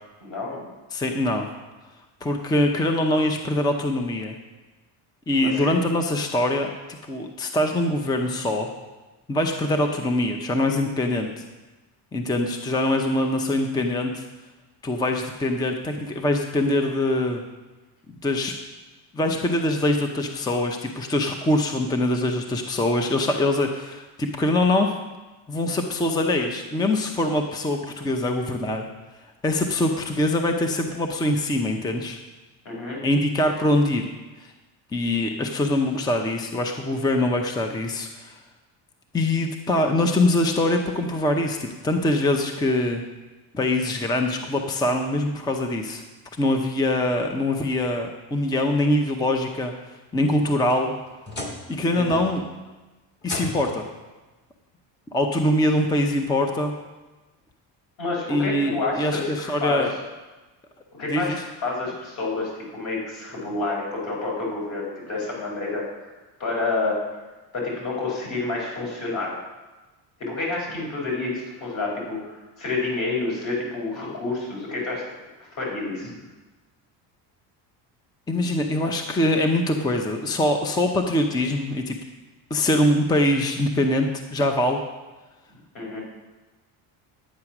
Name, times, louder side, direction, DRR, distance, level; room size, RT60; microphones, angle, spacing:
voice 1, 0.2-0.7 5.4-5.7 32.6-33.0 51.9-52.2 58.0-59.9 61.0-61.4 61.6-66.1 66.4-67.0 67.5-69.4 70.2-75.0 75.4-76.1 85.7-86.0, left 3 dB, 50° left, -3 dB, 4.5 m, -29 dB
voice 2, 0.9-1.5 2.2-4.4 5.3-8.7 9.3-11.4 12.1-14.2 14.8-17.4 18.1-18.5 19.1-24.9 25.5-28.9 29.4-32.2 33.0-34.1 34.4-34.5 34.9-38.4 39.1-43.0 43.5-46.0 46.4-49.7 50.1-50.9 51.7-52.4 53.2-53.8 55.1-56.7 58.3-59.9 61.1-61.4 78.3-82.0 82.5-84.8, left 1 dB, 10° left, 4 dB, 0.6 m, -23 dB
sound 1, 50.2-51.8 52.1-52.6 53.2-53.9 55.1-55.2 55.8-55.9 57.5-57.6, left 2 dB, 25° left, 1.8 m, -37 dB
11.5 x 8.7 x 5.9 m, 1.2 s
cardioid pair, 160°, 41 cm